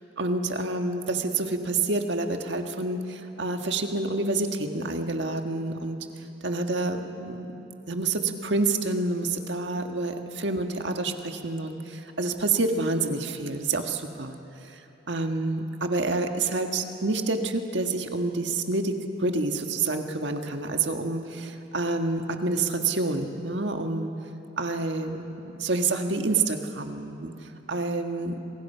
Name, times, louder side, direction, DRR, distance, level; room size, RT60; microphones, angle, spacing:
voice 1, 0.2-6.0 6.4-7.5 7.9-14.3 14.6-14.8 15.1-24.1 24.6-28.3, right 3 dB, 65° right, 5 dB, 1.7 m, -28 dB
28.0 x 23.5 x 5.7 m, 2.9 s
head